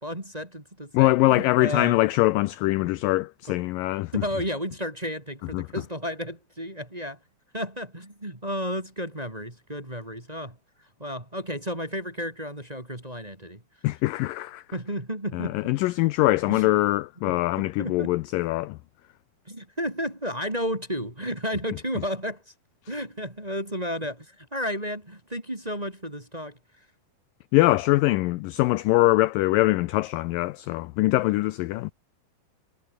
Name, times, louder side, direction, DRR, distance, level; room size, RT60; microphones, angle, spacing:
voice 1, 0.0-2.0 3.5-3.6 4.1-7.2 7.5-10.6 11.0-13.6 14.7-15.6 16.5-16.7 17.2-18.1 19.4-22.5 22.9-26.8, equal, 10° right, 2.6 m, -32 dB
voice 2, 0.9-4.1 5.5-5.7 13.8-14.6 15.3-18.8 27.5-31.9, left 19 dB, 80° left, 2.0 m, -23 dB
omnidirectional pair, 4.5 m